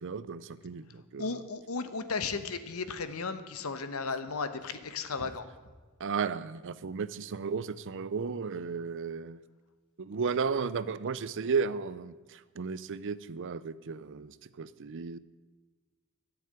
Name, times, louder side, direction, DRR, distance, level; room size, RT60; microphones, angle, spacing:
voice 1, 0.0-1.4 6.0-9.4 10.0-15.2, right 5 dB, 60° right, 16 dB, 0.5 m, -34 dB
voice 2, 1.2-5.4, left 4 dB, 75° left, 11 dB, 1.0 m, -35 dB
13.0 x 7.0 x 9.6 m, 1.3 s
head